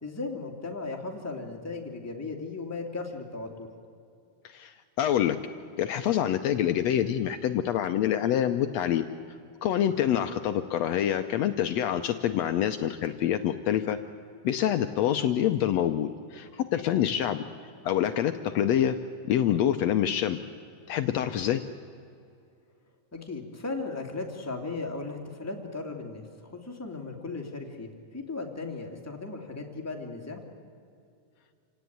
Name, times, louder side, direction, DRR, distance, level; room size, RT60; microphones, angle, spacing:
voice 1, 0.0-3.7 9.9-10.0 16.8-17.1 23.1-30.4, left 3 dB, 5° left, 1 dB, 1.9 m, -37 dB
voice 2, 4.4-5.4 5.8-9.0 9.6-14.0 14.4-17.4 17.8-19.0 19.3-20.4 20.9-21.6, left 10 dB, 90° left, 8 dB, 1.5 m, -26 dB
27.5 x 17.5 x 9.4 m, 2.5 s
omnidirectional pair, 4.1 m